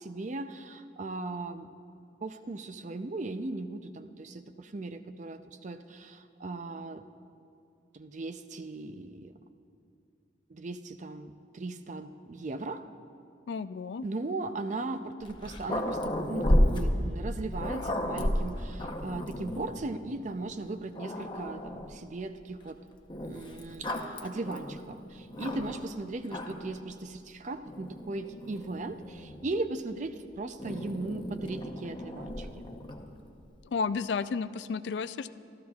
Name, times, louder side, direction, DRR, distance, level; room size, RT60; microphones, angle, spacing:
voice 1, 0.0-1.7 2.2-7.0 7.9-9.3 10.5-12.9 14.0-22.8 23.2-32.5, right 2 dB, 40° right, 9 dB, 0.5 m, -38 dB
voice 2, 13.5-14.1 33.7-35.3, left 5 dB, 65° left, 13 dB, 0.3 m, -32 dB
Growling, 15.2-19.8 20.5-20.6 20.9-22.0 23.1-25.9 26.2-26.8 27.7-29.5 30.6-33.1, left 1 dB, 25° left, 0.8 m, -32 dB
25.5 x 13.5 x 2.4 m, 2.5 s
head